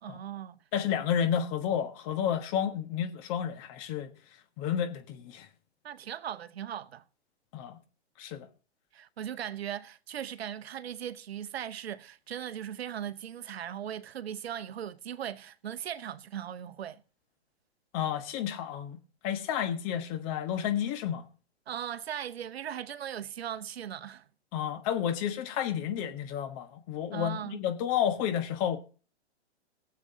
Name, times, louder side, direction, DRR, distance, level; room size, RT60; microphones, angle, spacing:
voice 1, 0.0-0.6 5.8-7.0 8.9-17.0 21.7-24.2 27.1-27.6, right 10 dB, 65° right, 0.9 m, -38 dB
voice 2, 0.7-4.1 4.6-5.5 7.5-7.8 8.2-8.5 17.9-21.2 24.5-28.8, left 9 dB, 30° left, 1.3 m, -31 dB
21.0 x 7.6 x 2.8 m
hypercardioid pair, 135°, 33 cm